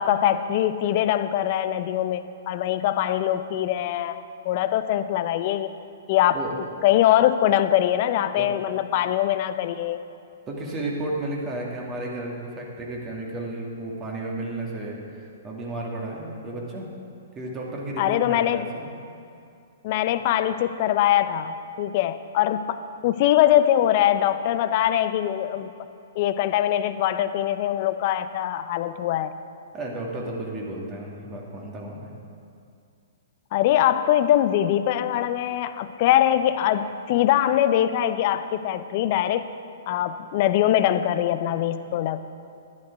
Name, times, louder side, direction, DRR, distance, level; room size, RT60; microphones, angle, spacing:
voice 1, 0.0-4.2 4.4-5.7 6.1-6.4 6.8-10.0 18.0-18.7 19.8-25.7 26.1-29.3 33.5-39.5 39.9-42.2, left 12 dB, 45° left, 12 dB, 0.6 m, -22 dB
voice 2, 10.5-16.9 17.4-18.9 29.7-32.1, right 2 dB, 25° right, -2 dB, 2.2 m, -33 dB
11.0 x 10.5 x 4.7 m, 2.4 s
hypercardioid pair, 120°, 0 cm